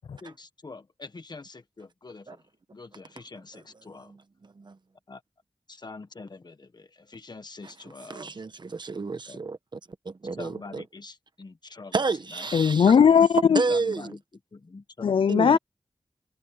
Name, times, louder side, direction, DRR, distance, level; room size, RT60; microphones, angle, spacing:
voice 1, 0.2-2.4 2.7-4.2 5.1-5.2 5.7-8.4 9.3-9.4 10.4-11.9 12.3-12.5 13.7-14.2 14.5-15.6, left 3 dB, 55° left, 1.5 m, -44 dB
voice 2, 4.0-4.8 8.1-9.6 10.0-10.8 11.9-12.9 13.5-14.1 15.3-15.6, right 4 dB, 60° right, 1.2 m, -30 dB
voice 3, 12.5-13.6 15.0-15.6, left 7 dB, 85° left, 0.4 m, -18 dB
wide cardioid pair, 80°, 9 cm